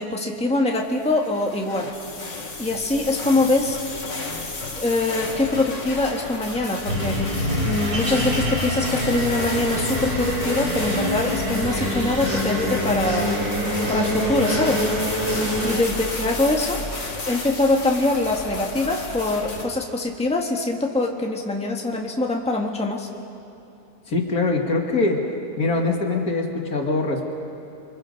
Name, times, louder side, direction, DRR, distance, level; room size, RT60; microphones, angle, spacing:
voice 1, 0.0-1.9 2.6-3.8 4.8-7.4 7.6-13.4 13.9-14.9 15.6-16.8 17.3-23.1, left 2 dB, 5° left, 0 dB, 1.6 m, -23 dB
sound 1, 0.9-19.6, left 2 dB, 50° left, 2.3 m, -33 dB
sound 2, 6.9-15.8, equal, 65° right, 5.2 m, -25 dB
voice 2, 24.1-25.3 25.6-27.3, left 3 dB, 65° left, 1 dB, 2.6 m, -23 dB
28.5 x 24.5 x 5.3 m, 2.6 s
omnidirectional pair, 1.7 m